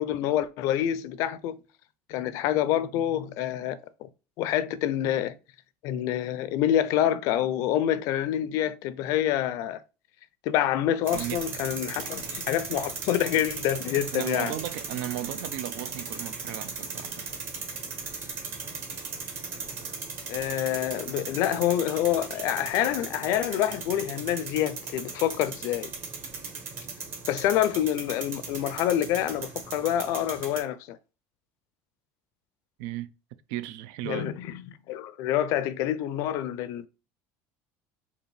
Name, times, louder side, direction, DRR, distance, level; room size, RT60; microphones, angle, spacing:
voice 1, 0.0-1.6 2.1-4.1 4.4-5.4 5.8-9.8 10.5-14.6 20.3-25.9 27.3-31.0 34.0-34.6 34.9-36.9, left 11 dB, 60° left, 0.4 m, -27 dB
sound 1, 11.1-30.6, right 4 dB, 35° right, 1.2 m, -37 dB
voice 2, 11.1-11.5 14.1-17.3 32.8-33.1 33.5-34.3, right 13 dB, 75° right, 0.4 m, -35 dB
5.1 x 2.5 x 3.2 m
cardioid pair, 155°, 6 cm